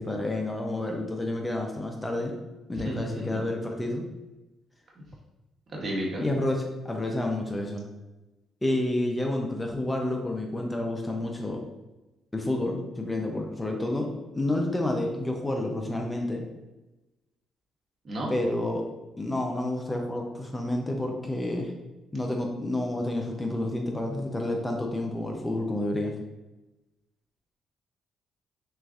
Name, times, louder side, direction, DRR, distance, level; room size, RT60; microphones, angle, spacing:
voice 1, 0.0-2.3 2.7-4.0 6.2-7.8 8.6-11.6 12.3-16.4 18.3-18.9 19.2-21.7 22.1-26.1, left 1 dB, 15° left, 2 dB, 0.6 m, -29 dB
voice 2, 2.8-3.4 5.7-6.2 18.0-18.3, equal, 50° right, -3 dB, 1.3 m, -32 dB
6.2 x 2.6 x 2.4 m, 1.1 s
cardioid pair, 90°, 0 cm